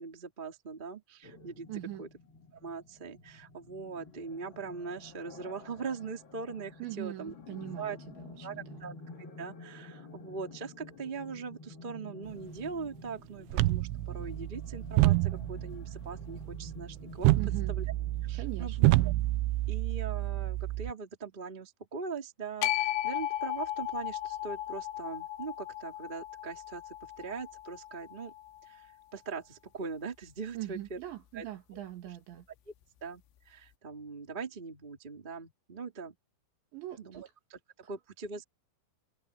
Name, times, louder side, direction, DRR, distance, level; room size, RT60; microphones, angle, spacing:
voice 1, 0.0-1.7 2.0-2.1 2.5-7.3 7.7-8.0 8.4-8.9 9.4-17.3 17.7-17.8 18.2-18.7 19.0-19.1 19.7-28.3 28.6-31.0 31.3-31.4 31.7-31.8 33.0-36.1 37.0-37.6 37.9-38.4, right 5 dB, 20° right, 1.4 m, -41 dB
sound 1, 1.2-19.1, left 3 dB, 45° left, 1.6 m, -50 dB
voice 2, 1.7-2.1 6.8-8.8 17.4-17.7 18.4-18.9 30.5-32.5 36.7-37.3, right 14 dB, 65° right, 4.1 m, -41 dB
sound 2, 13.5-20.9, right 18 dB, 85° right, 2.6 m, -29 dB
sound 3, 22.6-28.8, left 13 dB, 85° left, 4.3 m, -36 dB
omnidirectional pair, 5.8 m